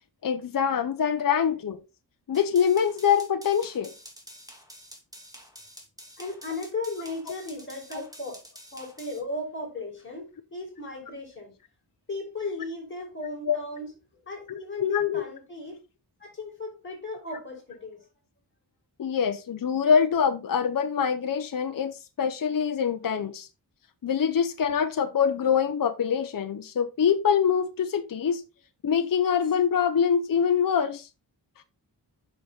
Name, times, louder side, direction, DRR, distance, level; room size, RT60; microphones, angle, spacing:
voice 1, 0.2-1.8 2.3-3.9 13.5-13.6 14.8-15.2 19.0-23.5 24.0-28.4 28.8-31.1, left 7 dB, 55° left, 0.7 m, -24 dB
sound 1, 2.3-9.2, equal, 10° right, 2.4 m, -48 dB
voice 2, 6.2-8.4 8.7-11.5 12.1-13.9 14.2-15.8 16.2-18.1, left 2 dB, 30° left, 4.9 m, -36 dB
8.3 x 5.9 x 3.9 m
wide cardioid pair, 115°, 41 cm